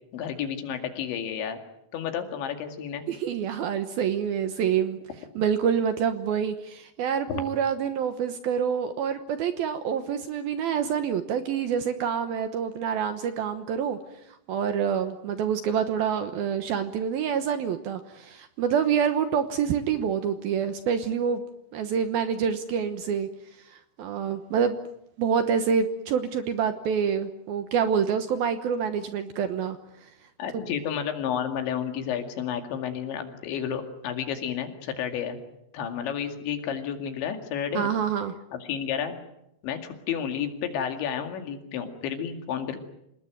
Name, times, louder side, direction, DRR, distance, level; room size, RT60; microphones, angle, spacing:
voice 1, 0.1-1.6 1.9-3.0 7.3-7.4 30.4-35.4 35.7-37.9 38.5-39.2 39.6-42.8, left 8 dB, 75° left, 6 dB, 4.5 m, -31 dB
voice 2, 3.1-5.0 5.4-14.0 14.5-21.4 21.7-23.3 23.6-24.8 25.2-30.1 30.5-30.6 37.7-38.3, right 7 dB, 70° right, 9 dB, 2.5 m, -27 dB
26.5 x 20.0 x 9.2 m, 0.82 s
omnidirectional pair, 5.4 m